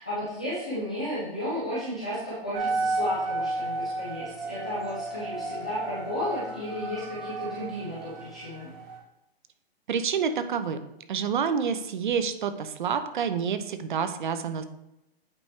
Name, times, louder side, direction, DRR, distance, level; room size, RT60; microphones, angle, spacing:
voice 1, 0.0-8.7, left 1 dB, 5° left, -10 dB, 0.3 m, -33 dB
sound 1, 2.5-9.0, right 2 dB, 15° right, 0.8 m, -33 dB
voice 2, 9.9-10.8 11.1-14.6, right 6 dB, 50° right, 10 dB, 0.8 m, -28 dB
8.6 x 4.8 x 3.3 m, 0.87 s
hypercardioid pair, 155°, 31 cm